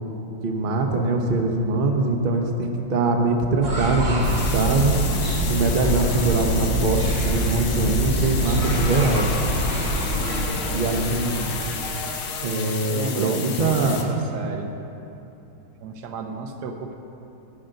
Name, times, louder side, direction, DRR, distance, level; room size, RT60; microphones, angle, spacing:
voice 1, 0.4-5.0 5.5-9.3 10.1-11.5 12.4-14.1, right 2 dB, 85° right, 3 dB, 0.4 m, -23 dB
sound 1, 3.6-12.0, right 1 dB, 35° right, 1.5 m, -25 dB
sound 2, 4.2-14.0, left 7 dB, 75° left, 1.5 m, -33 dB
sound 3, 8.6-14.1, left 2 dB, 50° left, 0.7 m, -35 dB
voice 2, 12.9-14.7 15.6-16.9, right 4 dB, 65° right, 4 dB, 1.2 m, -33 dB
12.5 x 9.0 x 3.9 m, 2.9 s
omnidirectional pair, 2.2 m